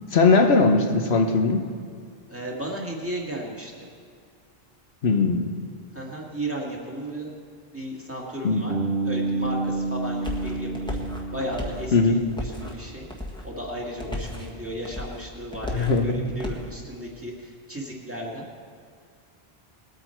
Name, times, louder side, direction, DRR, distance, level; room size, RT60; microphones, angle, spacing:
voice 1, 0.1-1.6 5.0-5.5 8.4-8.6 11.9-12.2 15.7-16.2, left 4 dB, 80° left, 4 dB, 1.3 m, -19 dB
voice 2, 2.3-3.7 5.9-7.3 7.7-8.7 9.0-11.0 11.3-13.1 13.4-18.5, right 1 dB, 15° right, -3 dB, 2.0 m, -34 dB
Bass guitar, 8.7-12.6, right 2 dB, 85° right, 1.7 m, -29 dB
sound 1, 9.4-16.7, left 1 dB, 5° left, 1.4 m, -36 dB
20.5 x 8.7 x 4.5 m, 2.2 s
omnidirectional pair, 1.1 m